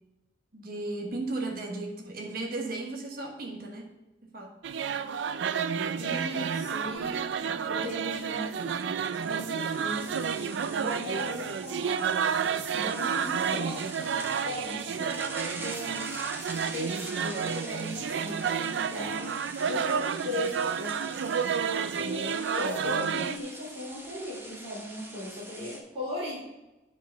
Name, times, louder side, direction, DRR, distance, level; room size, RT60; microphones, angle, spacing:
voice 1, 0.5-3.9 4.3-4.5 7.4-8.0, right 2 dB, 55° right, 1 dB, 1.2 m, -36 dB
sound 1, 4.6-23.4, right 7 dB, 75° right, 0.4 m, -30 dB
voice 2, 5.9-8.9 9.2-12.1 12.7-16.0 16.5-19.3 19.6-21.0 21.7-26.4, left 1 dB, 35° right, -8 dB, 3.4 m, -38 dB
sound 2, 7.3-7.4 8.0-25.8, right 1 dB, 10° right, 1.1 m, -45 dB
9.1 x 4.7 x 5.7 m, 1.0 s
head